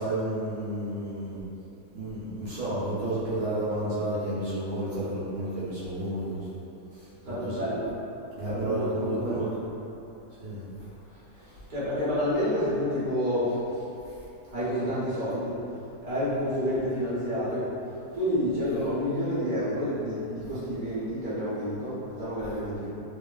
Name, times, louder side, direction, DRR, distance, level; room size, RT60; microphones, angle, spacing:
voice 1, 0.0-1.4 1.9-6.5 6.9-7.7 8.4-9.5 10.4-10.6 14.0-14.2, right 1 dB, 65° right, -12 dB, 1.1 m, -31 dB
voice 2, 7.2-7.9 8.4-9.5 11.7-13.8 14.5-15.6 16.0-17.7 18.1-22.9, equal, 40° right, -12 dB, 0.7 m, -29 dB
2.9 x 2.4 x 2.3 m, 2.8 s
omnidirectional pair, 2.0 m